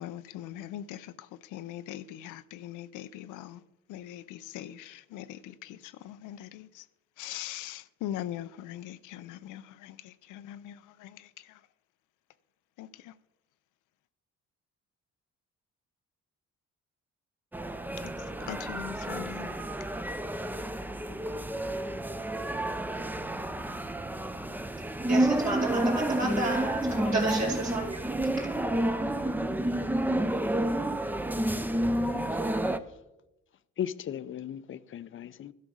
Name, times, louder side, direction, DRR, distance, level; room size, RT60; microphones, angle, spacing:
voice 1, 0.0-3.6 3.9-6.9 7.2-11.6 12.8-13.1 18.4-19.5, left 12 dB, 90° left, 0.5 m, -41 dB
sound 1, 17.5-32.8, right 1 dB, 5° right, 0.5 m, -30 dB
voice 2, 25.1-28.1, right 3 dB, 65° right, 2.9 m, -32 dB
voice 3, 32.1-32.5 33.8-35.5, left 9 dB, 45° left, 0.5 m, -37 dB
12.0 x 5.2 x 6.2 m
cardioid pair, 90°, 30 cm